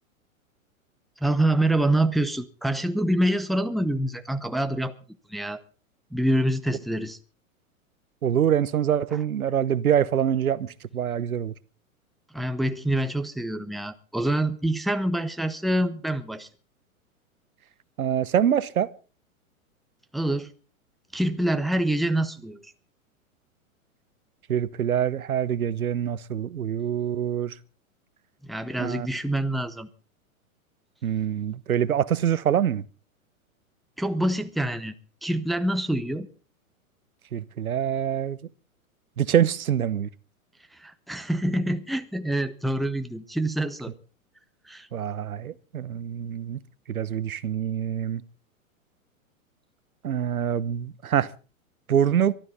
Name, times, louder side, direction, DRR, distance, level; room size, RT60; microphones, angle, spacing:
voice 1, 1.2-4.9 5.3-5.6 6.1-7.2 12.3-16.5 20.1-20.5 21.1-22.6 28.5-29.9 34.0-34.9 35.2-36.3 40.8-43.9 44.7-44.9, right 1 dB, ahead, 0.8 m, -26 dB
voice 2, 8.2-11.5 18.0-18.9 24.5-27.6 28.8-29.1 31.0-32.8 37.3-38.4 39.2-40.1 44.9-46.6 46.9-48.2 50.0-51.3 51.9-52.3, right 9 dB, 85° right, 1.0 m, -25 dB
23.5 x 12.5 x 4.1 m
hypercardioid pair, 115°, 42 cm